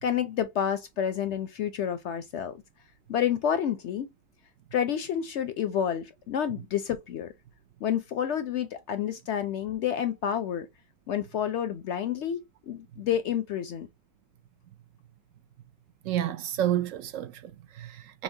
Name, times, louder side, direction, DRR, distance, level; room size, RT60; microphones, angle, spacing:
voice 1, 0.0-2.6 3.1-4.1 4.7-7.3 7.8-10.7 11.1-13.9, left 9 dB, 65° left, 0.7 m, -29 dB
voice 2, 16.0-18.2, right 11 dB, 70° right, 0.9 m, -30 dB
5.7 x 2.3 x 2.7 m
omnidirectional pair, 1.5 m